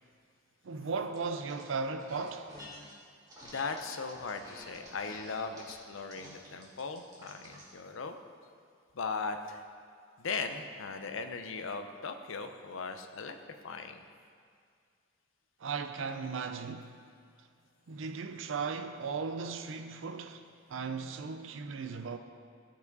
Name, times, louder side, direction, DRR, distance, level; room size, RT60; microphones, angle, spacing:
voice 1, 0.6-2.5 15.6-17.0 17.9-22.2, right 4 dB, 65° right, 0.5 m, -37 dB
sound 1, 1.1-1.6 2.0-2.9 3.3-7.7, equal, 20° right, 1.6 m, -50 dB
voice 2, 3.4-8.2 8.9-9.6 10.2-13.4 13.6-14.0, left 4 dB, 70° left, 0.6 m, -38 dB
13.5 x 4.7 x 4.0 m
head